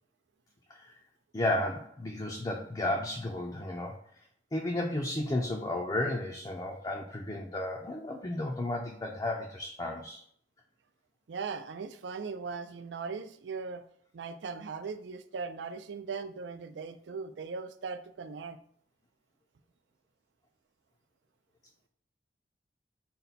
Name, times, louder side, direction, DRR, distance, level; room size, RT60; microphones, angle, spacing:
voice 1, 1.3-4.0 4.5-10.2, left 1 dB, 20° left, 0 dB, 0.4 m, -33 dB
voice 2, 11.3-13.8 14.1-18.6, right 5 dB, 80° right, 9 dB, 0.4 m, -39 dB
5.5 x 2.2 x 4.0 m, 0.62 s
head